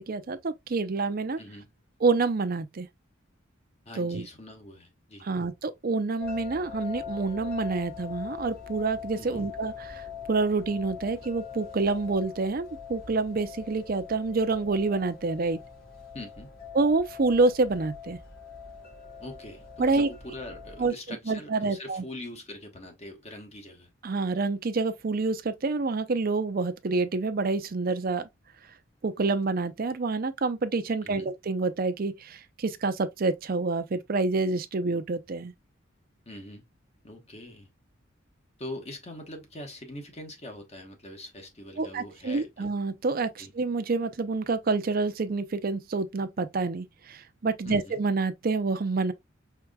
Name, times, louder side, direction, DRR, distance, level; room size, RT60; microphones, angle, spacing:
voice 1, 0.0-1.4 2.0-2.9 4.0-4.3 5.2-10.0 10.3-15.6 16.7-18.2 19.8-20.1 20.8-22.0 24.0-28.2 29.0-35.5 41.8-49.1, right 3 dB, 45° right, 0.5 m, -27 dB
voice 2, 1.4-1.7 3.8-5.3 9.1-9.5 16.1-16.5 19.2-23.9 31.0-31.3 36.2-36.6 37.0-37.7 38.6-42.7 43.4-43.5 47.6-48.0, left 1 dB, 35° left, 1.2 m, -43 dB
sound 1, 6.2-20.9, left 7 dB, 50° left, 2.3 m, -42 dB
4.6 x 3.7 x 2.2 m
head